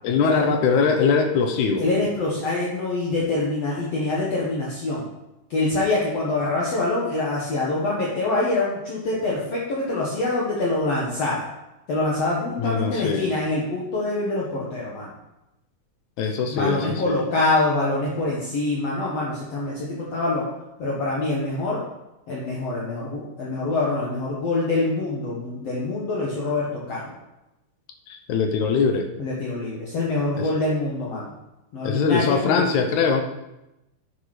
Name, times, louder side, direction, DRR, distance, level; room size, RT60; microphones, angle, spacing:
voice 1, 0.0-1.9 12.6-13.3 16.2-17.2 28.1-29.1 30.4-30.5 31.8-33.2, left 5 dB, 75° left, 6 dB, 2.0 m, -22 dB
voice 2, 1.8-5.1 5.5-11.5 11.9-15.1 16.5-20.4 20.8-21.8 22.3-27.2 29.2-31.3 31.7-32.6, left 2 dB, 55° left, -5 dB, 2.2 m, -25 dB
8.6 x 6.9 x 4.9 m, 0.94 s
omnidirectional pair, 3.7 m